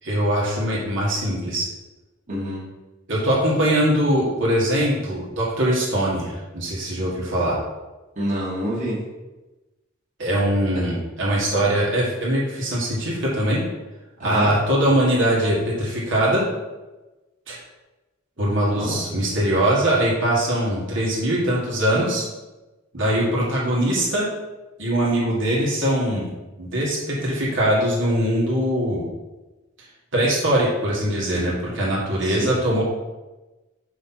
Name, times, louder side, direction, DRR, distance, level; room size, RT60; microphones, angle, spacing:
voice 1, 0.0-1.7 3.1-7.6 10.2-13.6 14.2-16.4 17.5-17.6 18.4-22.2 22.9-24.3 24.8-26.3 26.6-29.1 30.1-32.8, right 1 dB, 65° right, -5 dB, 1.9 m, -22 dB
voice 2, 2.3-2.6 8.2-9.0 14.2-14.5 18.8-19.0 32.2-32.6, equal, 40° right, -6 dB, 2.0 m, -27 dB
5.7 x 4.3 x 5.7 m, 1.1 s
head